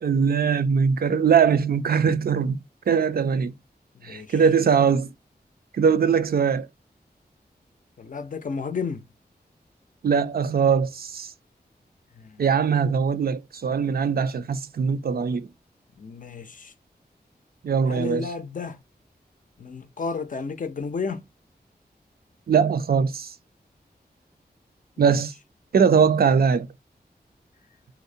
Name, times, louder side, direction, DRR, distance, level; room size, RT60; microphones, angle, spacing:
voice 1, 0.0-2.6 2.9-3.5 4.0-5.1 5.7-6.7 10.0-11.3 12.4-15.5 17.6-18.3 22.5-23.3 25.0-25.3 25.7-26.7, right 6 dB, 65° right, 0.4 m, -21 dB
voice 2, 3.9-4.4 8.0-9.0 12.1-12.4 16.0-16.7 17.9-18.8 19.6-21.2, left 5 dB, 50° left, 0.5 m, -32 dB
2.6 x 2.0 x 2.6 m
wide cardioid pair, 80°, 17 cm